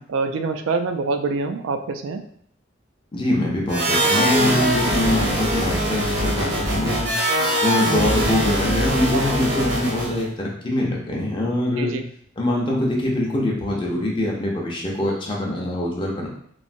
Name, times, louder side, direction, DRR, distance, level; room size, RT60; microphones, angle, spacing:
voice 1, 0.1-2.3 9.1-9.4 11.8-12.0, right 4 dB, 80° right, 7 dB, 0.4 m, -25 dB
voice 2, 3.1-7.1 7.6-12.0 12.4-16.3, left 1 dB, 25° left, -2 dB, 0.5 m, -23 dB
sound 1, 3.7-10.2, right 1 dB, 60° right, 0.8 m, -22 dB
3.1 x 2.6 x 2.5 m, 0.65 s
head